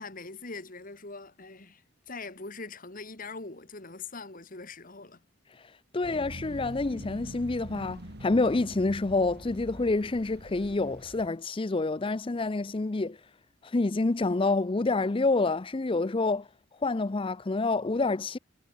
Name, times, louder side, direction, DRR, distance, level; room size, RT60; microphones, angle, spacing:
voice 1, 0.0-5.2, left 3 dB, 40° left, 2.1 m, -42 dB
voice 2, 5.5-13.3 13.6-16.5 16.8-18.4, left 3 dB, 25° left, 0.5 m, -28 dB
sound 1, 6.0-11.3, equal, 50° right, 4.2 m, -44 dB
head